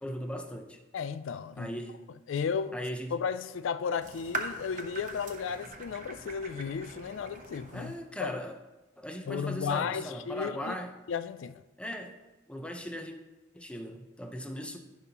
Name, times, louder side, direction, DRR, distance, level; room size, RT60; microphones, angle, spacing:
voice 1, 0.0-0.8 1.6-2.0 2.7-3.1 7.7-8.5 9.0-10.9 11.8-12.2 12.5-13.2 13.5-14.8, equal, 5° left, 0.7 m, -38 dB
voice 2, 0.9-1.7 2.3-2.7 3.1-7.9 8.2-8.4 9.3-10.7 11.1-11.6, left 6 dB, 75° left, 0.4 m, -34 dB
sound 1, 4.0-8.0, right 3 dB, 40° right, 0.9 m, -41 dB
14.5 x 5.4 x 2.9 m
head